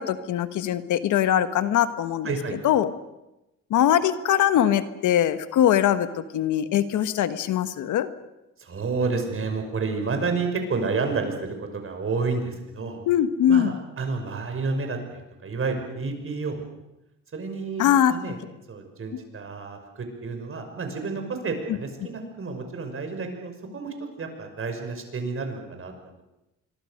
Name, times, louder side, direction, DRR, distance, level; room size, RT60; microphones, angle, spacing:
voice 1, 0.0-2.3 2.6-2.9 3.7-8.1 13.1-13.7 17.8-18.1, left 10 dB, 80° left, 12 dB, 1.5 m, -22 dB
voice 2, 2.2-2.6 8.6-13.0 13.5-16.7 17.3-18.4 18.7-26.2, right 4 dB, 45° right, 5 dB, 6.0 m, -30 dB
25.5 x 23.5 x 6.6 m, 0.95 s
cardioid pair, 90°, 30 cm